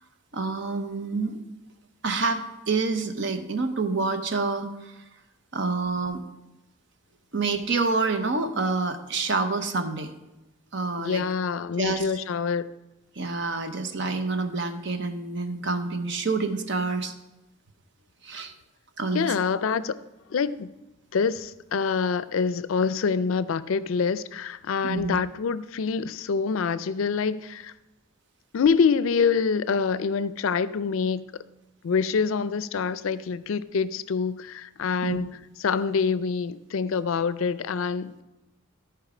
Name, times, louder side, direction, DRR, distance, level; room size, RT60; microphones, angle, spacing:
voice 1, 0.3-1.4 2.0-5.0 5.5-6.2 7.3-10.1 10.7-11.3 11.8-12.0 13.2-17.1 18.2-18.5 19.0-19.3 24.8-25.2 35.0-35.2, right 3 dB, 55° right, 0.8 m, -27 dB
voice 2, 11.0-12.7 19.1-20.0 20.3-20.7 21.1-27.7 28.5-31.3 31.8-38.2, left 5 dB, 75° left, 0.4 m, -26 dB
13.0 x 4.7 x 5.0 m
head